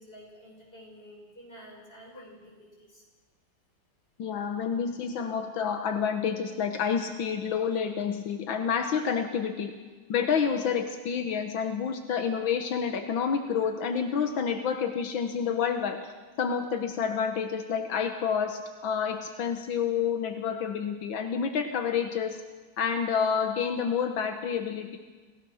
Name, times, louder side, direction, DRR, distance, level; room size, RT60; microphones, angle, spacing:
voice 1, 0.0-3.0, equal, 30° left, -2 dB, 6.6 m, -50 dB
voice 2, 4.2-9.7 10.1-16.1 16.4-22.4 22.8-25.0, left 7 dB, 85° left, 6 dB, 2.0 m, -29 dB
27.0 x 16.5 x 6.4 m, 1.3 s
omnidirectional pair, 2.1 m